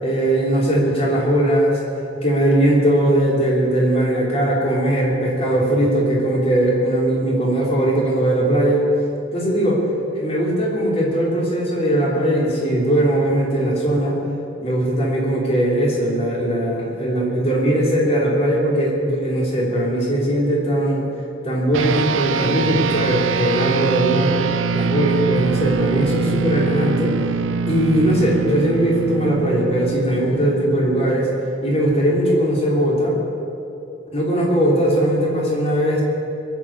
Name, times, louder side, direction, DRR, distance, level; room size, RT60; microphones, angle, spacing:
voice 1, 0.0-1.8 2.2-8.8 9.3-9.8 10.1-14.2 14.6-21.1 21.4-24.4 24.7-27.1 27.7-31.3 31.6-33.2 34.1-36.0, right 1 dB, 30° left, -3 dB, 3.4 m, -19 dB
sound 1, 21.7-31.4, right 5 dB, 90° right, 0.6 m, -23 dB
22.0 x 7.7 x 8.5 m, 2.8 s
head